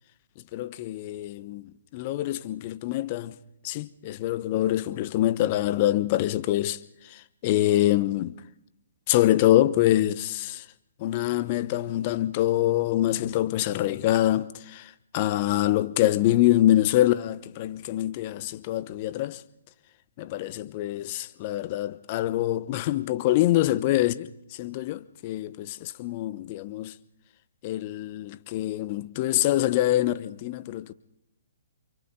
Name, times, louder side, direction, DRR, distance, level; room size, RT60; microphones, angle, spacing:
voice 1, 0.5-3.3 3.6-8.3 9.1-10.6 11.0-19.4 20.2-26.9 27.6-30.9, left 14 dB, 35° left, 1.0 m, -25 dB
28.5 x 28.0 x 3.8 m
figure-of-eight pair, 130°, 0 cm